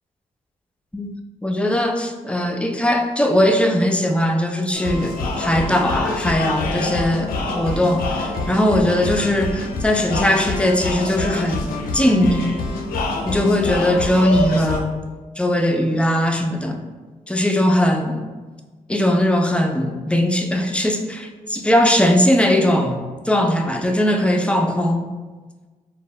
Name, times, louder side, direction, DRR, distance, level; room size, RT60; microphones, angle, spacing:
voice 1, 1.4-11.7 11.9-12.5 13.2-15.0 15.4-16.8 17.3-18.3 18.9-25.1, left 1 dB, 10° left, 4 dB, 0.3 m, -19 dB
sound 1, 4.7-14.8, left 2 dB, 80° left, 0.4 m, -26 dB
2.0 x 2.0 x 3.6 m, 1.3 s
cardioid pair, 75°, 15 cm